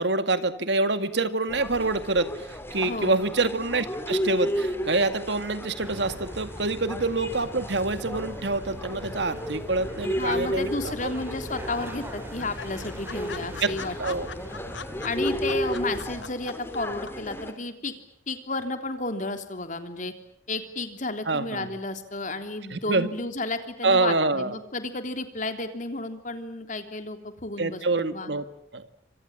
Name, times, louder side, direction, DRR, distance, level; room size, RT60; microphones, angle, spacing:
voice 1, 0.0-11.1 13.6-13.7 14.0-14.3 21.3-21.7 22.7-23.1 23.8-24.5 27.6-28.5 28.7-28.9, right 3 dB, 70° right, 11 dB, 2.1 m, -26 dB
sound 1, 1.5-17.5, equal, 15° left, 3.4 m, -34 dB
voice 2, 2.8-3.1 10.0-14.2 15.0-17.9 18.3-20.1 20.5-27.8 28.1-28.3, left 2 dB, 45° left, 7 dB, 3.3 m, -32 dB
sound 2, 5.8-16.2, equal, 15° right, 7.4 m, -41 dB
sound 3, 10.9-11.4 11.6-11.7 12.0-12.1 12.4-16.8 17.1-17.2, left 6 dB, 75° left, 1.2 m, -40 dB
28.5 x 26.0 x 7.3 m, 0.66 s
head